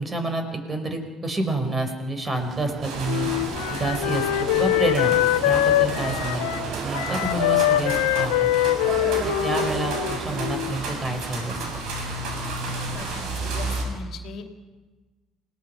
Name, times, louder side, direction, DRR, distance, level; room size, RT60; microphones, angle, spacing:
voice 1, 0.0-3.3 3.7-8.5 9.2-11.6, right 2 dB, 30° right, 6 dB, 5.2 m, -29 dB
sound 1, 2.3-11.8, right 7 dB, 45° right, 1.4 m, -36 dB
sound 2, 2.8-13.8, right 2 dB, 60° right, 7.9 m, -32 dB
Wind instrument woodwind instrument, 3.0-10.8, left 15 dB, 70° left, 0.9 m, -23 dB
voice 2, 12.9-14.5, left 5 dB, 55° left, 6 dB, 2.5 m, -39 dB
29.5 x 19.0 x 5.8 m, 1.2 s
figure-of-eight pair, 55°, 0 cm